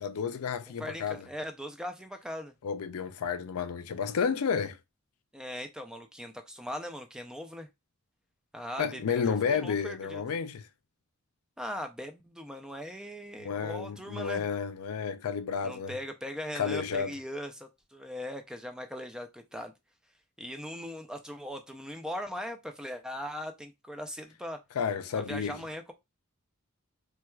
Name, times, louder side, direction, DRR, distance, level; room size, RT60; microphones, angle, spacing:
voice 1, 0.0-1.3 2.6-4.8 8.8-10.7 13.4-16.0 16.6-17.1 24.8-25.6, left 6 dB, 85° left, 0.4 m, -31 dB
voice 2, 0.8-2.5 5.3-7.7 8.5-10.2 11.6-14.4 15.6-19.7 20.4-24.6 25.2-25.9, equal, 5° right, 0.4 m, -39 dB
4.3 x 2.2 x 2.3 m
head